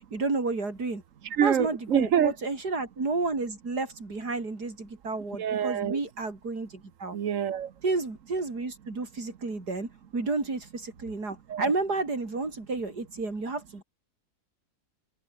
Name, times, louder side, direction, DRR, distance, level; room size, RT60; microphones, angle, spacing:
voice 1, 0.1-1.0 1.4-6.7 7.0-7.2 7.8-13.8, right 3 dB, 85° right, 5.0 m, -31 dB
voice 2, 1.2-2.3 5.4-6.0 7.1-7.7 11.5-11.7, right 9 dB, 60° right, 1.3 m, -26 dB
omnidirectional pair, 1.7 m